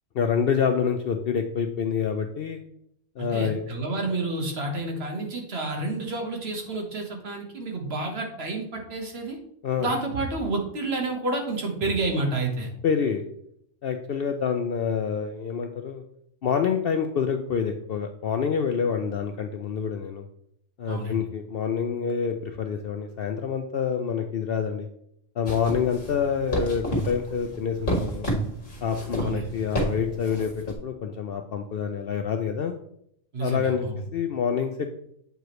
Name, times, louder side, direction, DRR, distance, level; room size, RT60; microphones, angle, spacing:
voice 1, 0.1-2.6 3.2-3.6 9.6-9.9 12.8-13.2 13.8-16.0 16.4-20.2 20.8-24.9 25.4-28.3 28.8-32.7 33.4-33.9 34.1-34.9, left 7 dB, 60° left, 6 dB, 0.6 m, -27 dB
voice 2, 3.2-9.4 9.8-12.7 20.9-21.2 29.2-29.5 33.3-34.0, right 2 dB, 55° right, 2 dB, 1.5 m, -29 dB
sound 1, 25.5-30.8, right 1 dB, 40° left, 1.9 m, -31 dB
7.8 x 4.8 x 3.1 m, 0.70 s
omnidirectional pair, 1.3 m